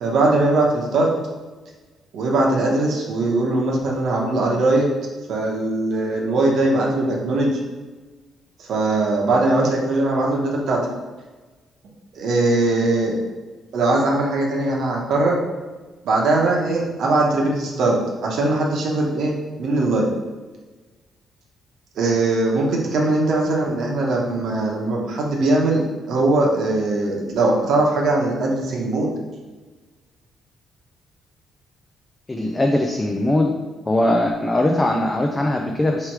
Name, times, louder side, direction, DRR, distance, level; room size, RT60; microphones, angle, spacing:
voice 1, 0.0-1.1 2.1-4.9 5.3-7.6 8.6-10.9 12.1-13.2 13.7-15.4 16.0-20.1 22.0-29.1, right 2 dB, 70° right, -1 dB, 1.0 m, -20 dB
voice 2, 32.3-33.5 33.9-36.1, left 1 dB, 20° left, 2 dB, 0.4 m, -20 dB
3.4 x 3.1 x 4.6 m, 1.3 s
cardioid pair, 90°, 0 cm